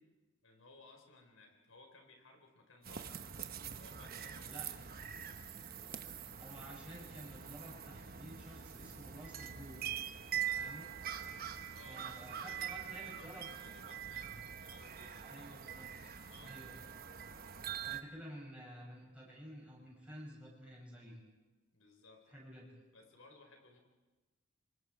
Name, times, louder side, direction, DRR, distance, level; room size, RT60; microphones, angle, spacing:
voice 1, 0.4-3.2 3.7-5.0 5.7-6.0 11.7-12.0 12.3-15.3 16.3-16.6 21.7-22.5 22.9-23.8, left 2 dB, 85° left, 4 dB, 4.2 m, -60 dB
sound 1, 2.8-18.0, right 8 dB, 45° right, 1.0 m, -44 dB
voice 2, 6.4-9.9 10.5-10.9 11.9-13.5 15.2-16.1 16.4-16.8 17.8-21.2 22.3-22.7, equal, 5° right, -5 dB, 7.2 m, -51 dB
27.0 x 24.5 x 4.8 m, 1.2 s
head